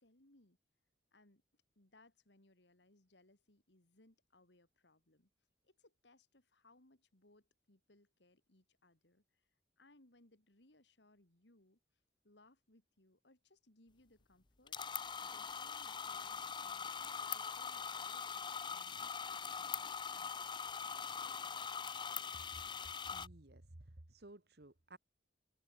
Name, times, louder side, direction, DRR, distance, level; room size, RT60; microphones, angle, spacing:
voice 1, 0.0-0.6 1.1-5.3 5.6-9.5 9.8-11.8 12.2-16.9 17.3-20.8, left 2 dB, 70° left, 3.2 m, -69 dB
sound 1, 14.7-23.3, left 6 dB, 25° left, 0.6 m, -42 dB
voice 2, 23.1-25.0, right 1 dB, 60° right, 1.7 m, -56 dB
head